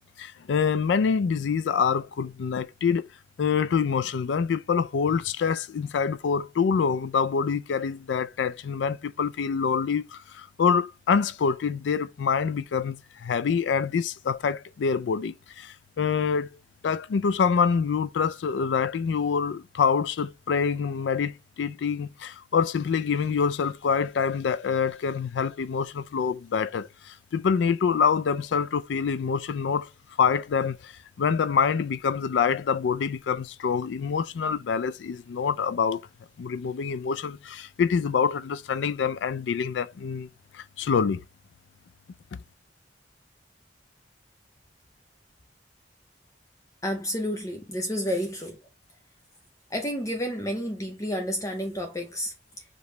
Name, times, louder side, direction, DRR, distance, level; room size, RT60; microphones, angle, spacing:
voice 1, 0.2-3.0 3.4-16.6 16.8-29.9 30.2-30.9 31.2-36.0 36.4-40.3 40.5-41.2 42.3-42.4, left 6 dB, 80° left, 0.4 m, -26 dB
voice 2, 46.8-48.6 49.7-52.6, equal, 20° left, 0.7 m, -30 dB
5.1 x 3.0 x 3.2 m
head